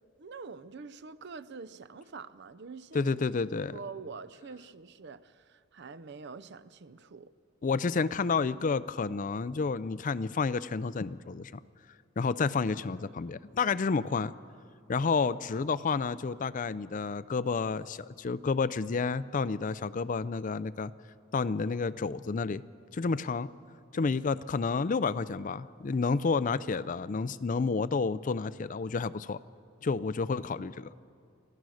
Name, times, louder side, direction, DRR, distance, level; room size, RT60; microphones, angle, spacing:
voice 1, 0.2-3.1 3.7-7.3 23.9-24.2, right 4 dB, 55° right, 0.6 m, -45 dB
voice 2, 2.9-3.8 7.6-11.5 12.2-14.3 14.9-20.9 21.3-22.6 22.9-23.5 23.9-29.4 29.8-30.9, left 4 dB, 40° left, 0.4 m, -30 dB
26.5 x 15.5 x 6.4 m
head